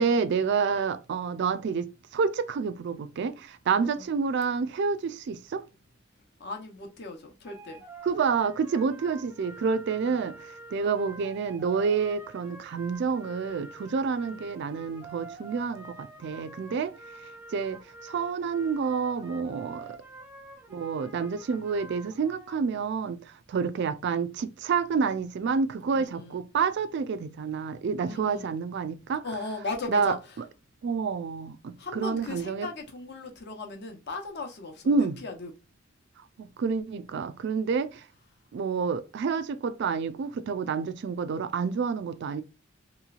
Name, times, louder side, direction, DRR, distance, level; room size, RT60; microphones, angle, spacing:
voice 1, 0.0-5.6 8.0-16.9 17.5-20.0 20.7-29.2 29.9-30.2 30.8-32.7 34.9-35.2 36.4-38.1 38.5-42.4, right 5 dB, 60° right, 0.3 m, -28 dB
voice 2, 6.4-7.8 10.0-10.2 14.3-14.4 19.8-19.9 25.9-26.4 28.1-28.5 29.2-30.4 31.8-35.5, left 3 dB, 55° left, 0.8 m, -38 dB
sound 1, 7.4-22.5, right 2 dB, 10° right, 0.5 m, -47 dB
3.0 x 3.0 x 2.4 m
head